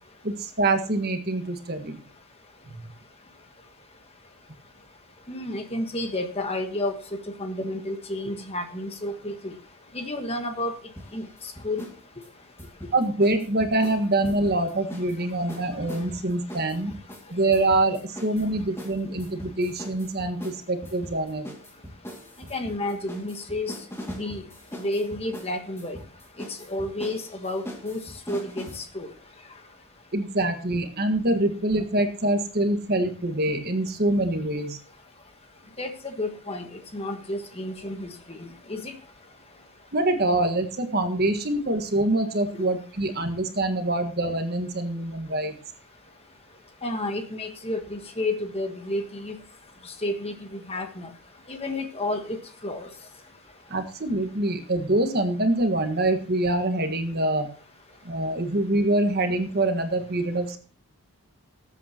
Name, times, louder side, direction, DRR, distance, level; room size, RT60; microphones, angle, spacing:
voice 1, 0.2-2.0 2.7-2.9 12.9-16.9 17.3-21.5 30.1-34.8 39.9-45.6 53.7-57.5 58.0-60.6, right 2 dB, 45° right, 6 dB, 1.5 m, -25 dB
voice 2, 5.3-7.0 7.3-9.5 9.9-10.7 11.1-11.3 11.6-11.9 22.5-23.8 24.1-24.4 24.7-26.0 26.4-28.0 28.3-29.1 35.8-36.7 36.9-39.0 46.8-49.4 50.0-51.1 51.5-52.9, left 1 dB, 25° left, 6 dB, 1.4 m, -31 dB
sound 1, 11.0-12.0 12.2-15.2 15.5-28.9, equal, 10° left, 2.3 m, -41 dB
19.5 x 8.4 x 2.9 m, 0.40 s
head